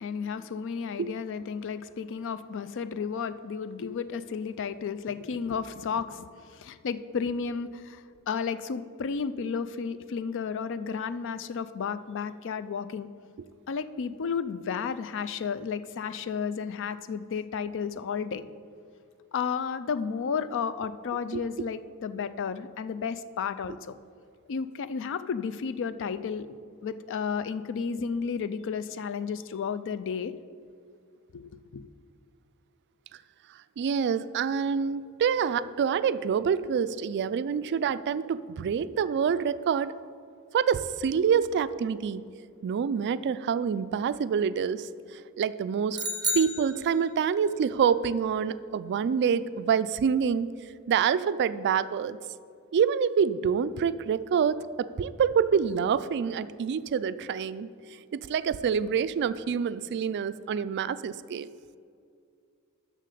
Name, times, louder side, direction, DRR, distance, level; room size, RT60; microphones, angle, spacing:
voice 1, 0.0-13.1 13.7-18.4 19.3-24.0 24.5-26.6 26.8-30.3 31.3-31.4 31.7-31.8, left 6 dB, 60° left, 13 dB, 0.4 m, -32 dB
voice 2, 33.8-39.9 40.5-42.3 42.6-44.9 45.4-46.0 46.4-50.5 50.9-52.2 52.7-57.7 58.1-61.5, right 7 dB, 50° right, 15 dB, 0.3 m, -26 dB
sound 1, 45.9-47.4, equal, 20° right, 0.6 m, -31 dB
7.6 x 6.4 x 6.7 m, 2.4 s
head